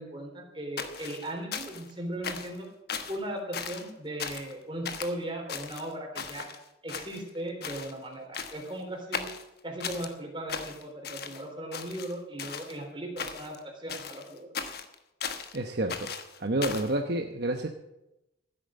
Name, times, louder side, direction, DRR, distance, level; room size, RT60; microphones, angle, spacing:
voice 1, 0.0-2.7 3.1-6.5 6.8-9.3 9.6-14.5, right 1 dB, 25° right, 1 dB, 3.6 m, -37 dB
sound 1, 0.8-1.9 2.2-2.6 2.9-3.2 3.5-3.9 4.2-4.5 4.8-5.1 5.5-6.6 6.9-7.4 7.6-7.9 8.3-8.7 9.1-10.1 10.5-11.4 11.7-12.8 13.2-13.6 13.9-15.6 15.9-16.9, left 6 dB, 50° left, 1.2 m, -37 dB
voice 2, 15.5-16.1 16.4-17.7, right 1 dB, 55° right, 4 dB, 1.0 m, -29 dB
15.0 x 8.8 x 7.7 m, 0.92 s
head